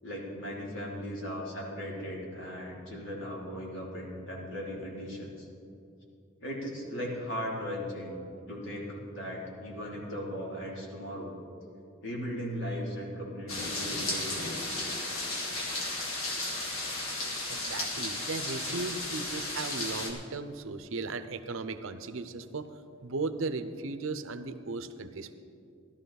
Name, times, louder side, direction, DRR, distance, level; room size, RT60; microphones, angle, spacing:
voice 1, 0.0-5.5 6.4-11.4 12.0-14.8, equal, 65° left, -3 dB, 3.0 m, -38 dB
sound 1, 13.5-20.1, left 2 dB, 85° left, 2.1 m, -34 dB
voice 2, 17.5-22.8 23.0-25.4, right 3 dB, 70° right, 10 dB, 0.7 m, -36 dB
15.0 x 12.5 x 4.1 m, 2.6 s
head